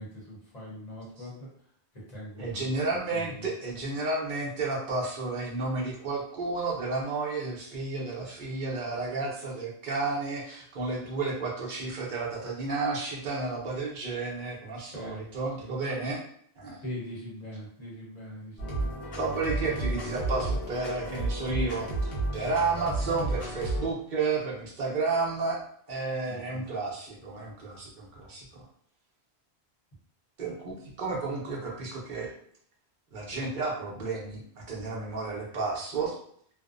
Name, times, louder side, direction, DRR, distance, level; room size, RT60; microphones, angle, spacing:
voice 1, 0.0-1.5 1.9-3.5 14.7-15.2 15.6-16.1 16.8-19.0 26.2-26.6, equal, 45° left, -6 dB, 1.0 m, -42 dB
voice 2, 2.4-16.2 16.6-16.8 19.2-25.6 25.9-28.6 30.4-32.3 33.1-36.2, right 3 dB, 55° right, -3 dB, 0.8 m, -32 dB
sound 1, 18.6-23.9, right 2 dB, 70° left, 1.0 m, -32 dB
2.6 x 2.0 x 2.4 m, 0.63 s
omnidirectional pair, 1.0 m